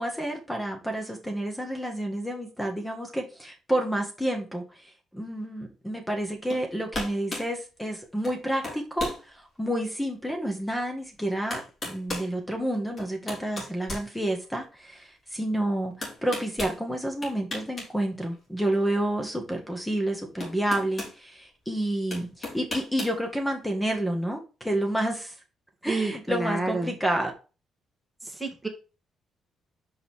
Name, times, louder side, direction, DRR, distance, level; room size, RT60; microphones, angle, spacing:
voice 1, 0.0-25.3 25.8-27.3, right 1 dB, 5° left, 3 dB, 1.9 m, -29 dB
sound 1, 6.5-6.7 6.9-7.5 8.2-8.4 8.6-9.2 9.8-9.9 11.0-11.1 11.5-12.3 13.0-14.6 16.0-16.8 17.2-17.9 18.2-18.3 19.8-19.9 20.4-21.2 22.1-23.2, left 2 dB, 35° left, 3.8 m, -35 dB
voice 2, 25.9-26.9 28.2-28.7, right 3 dB, 10° right, 2 dB, 2.0 m, -29 dB
5.5 x 5.4 x 4.6 m, 0.33 s
cardioid pair, 90°, 0 cm